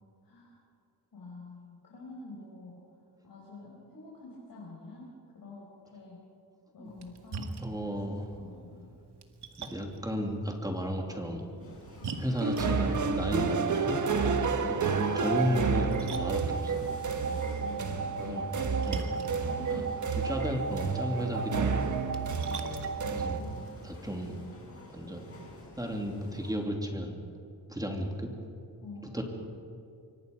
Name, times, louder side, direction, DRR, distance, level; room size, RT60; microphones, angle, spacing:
voice 1, 0.2-0.6 1.1-2.8 3.2-6.2 6.7-8.9 12.0-12.2 17.2-18.5 19.4-20.1 22.4-23.7 28.8-29.2, left 3 dB, 60° left, -5 dB, 5.7 m, -47 dB
Splash splatter, 6.8-24.0, right 4 dB, 80° right, 2.1 m, -47 dB
voice 2, 7.6-8.2 9.6-11.4 12.2-13.5 13.8-14.1 14.6-16.7 18.3-19.2 19.7-19.8 20.2-22.0 23.1-23.6 23.8-24.4 24.9-25.4 25.8-27.2 27.7-28.3 29.1-29.2, equal, 10° right, 2 dB, 2.9 m, -34 dB
sound 1, 11.6-26.5, left 2 dB, 35° left, 7.1 m, -49 dB
sound 2, 12.4-23.4, right 5 dB, 45° right, 1.4 m, -30 dB
25.5 x 24.5 x 5.4 m, 2.6 s
wide cardioid pair, 125°, 40 cm